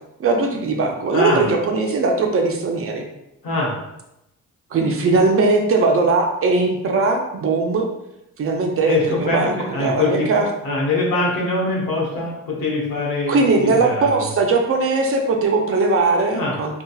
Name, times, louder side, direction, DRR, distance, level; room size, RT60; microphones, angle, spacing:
voice 1, 0.2-3.0 4.7-7.9 8.4-10.5 13.3-16.8, right 3 dB, 40° right, 2 dB, 0.4 m, -19 dB
voice 2, 1.1-1.4 3.4-3.8 8.9-14.2 16.3-16.5, left 2 dB, 85° left, -3 dB, 1.0 m, -23 dB
2.7 x 2.2 x 2.3 m, 0.87 s
cardioid pair, 100°, 33 cm